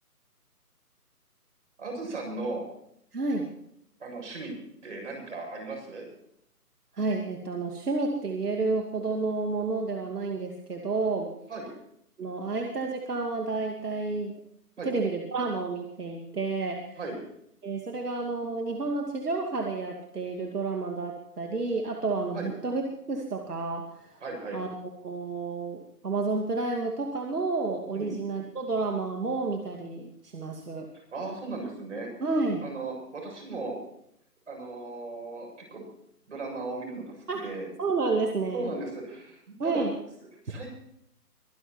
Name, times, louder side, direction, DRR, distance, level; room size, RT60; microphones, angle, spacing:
voice 1, 1.8-2.6 4.0-4.5 4.8-6.1 11.5-11.7 14.8-14.9 17.0-17.2 22.3-22.5 24.2-24.6 27.9-28.2 30.9-32.1 32.6-33.8 34.5-35.9 36.3-37.7 38.5-39.8 40.4-40.7, right 3 dB, 50° right, 0 dB, 7.6 m, -36 dB
voice 2, 3.1-3.5 6.9-11.3 12.2-14.4 14.8-17.0 17.6-22.8 23.1-24.2 24.5-24.7 25.0-30.9 32.2-32.6 37.3-37.4 37.8-38.7 39.6-39.9, right 3 dB, 75° right, 2 dB, 2.5 m, -30 dB
24.0 x 10.5 x 4.4 m, 0.75 s
hypercardioid pair, 165°, 47 cm